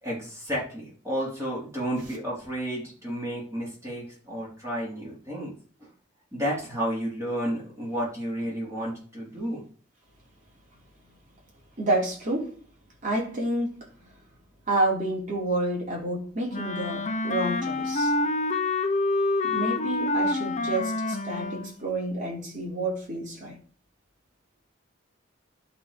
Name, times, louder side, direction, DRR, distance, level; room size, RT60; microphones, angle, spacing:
voice 1, 0.0-5.5 5.8-5.9 6.3-9.6, equal, 15° right, 3.8 m, -31 dB
voice 2, 11.8-12.6 13.0-14.1 14.7-18.1 19.4-23.6, right 2 dB, 40° right, 3.2 m, -29 dB
Wind instrument woodwind instrument, 16.5-21.8, left 2 dB, 35° left, 0.8 m, -27 dB
11.0 x 4.3 x 5.2 m
head